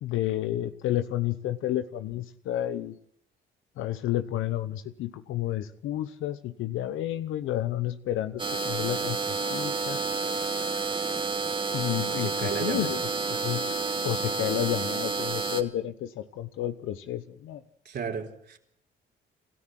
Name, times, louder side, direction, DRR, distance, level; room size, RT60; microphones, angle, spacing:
voice 1, 0.0-2.9 3.8-10.0 11.7-13.6 14.0-17.6, left 13 dB, 90° left, 1.0 m, -31 dB
sound 1, 8.4-15.6, right 4 dB, 25° right, 2.4 m, -30 dB
voice 2, 12.2-12.9 17.9-18.6, right 6 dB, 55° right, 4.0 m, -34 dB
27.5 x 13.5 x 7.6 m
cardioid pair, 90°, 20 cm